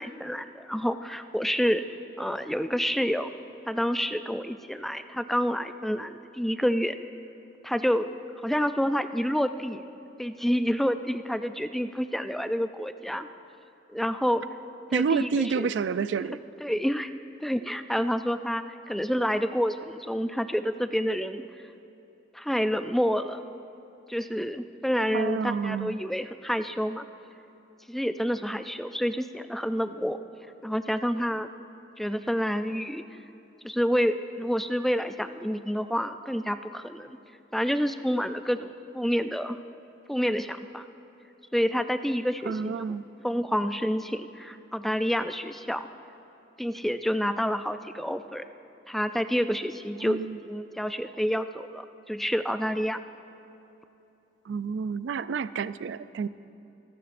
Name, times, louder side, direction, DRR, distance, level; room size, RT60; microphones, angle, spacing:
voice 1, 0.0-1.8 2.2-3.3 3.7-7.0 7.6-8.1 8.4-9.8 10.2-13.3 13.9-14.4 14.9-15.7 16.0-16.1 16.6-17.1 17.4-21.4 22.3-23.4 24.1-27.0 27.9-30.2 30.6-31.5 32.0-33.1 33.6-37.2 37.5-39.6 40.1-40.8 41.5-43.0 43.2-45.9 46.6-48.5 48.9-53.0, equal, ahead, 9 dB, 0.3 m, -28 dB
voice 2, 14.9-16.4 25.1-25.9 42.5-43.0 50.0-50.4 54.5-56.3, right 5 dB, 85° right, 15 dB, 0.3 m, -29 dB
27.0 x 12.0 x 2.5 m, 2.9 s
head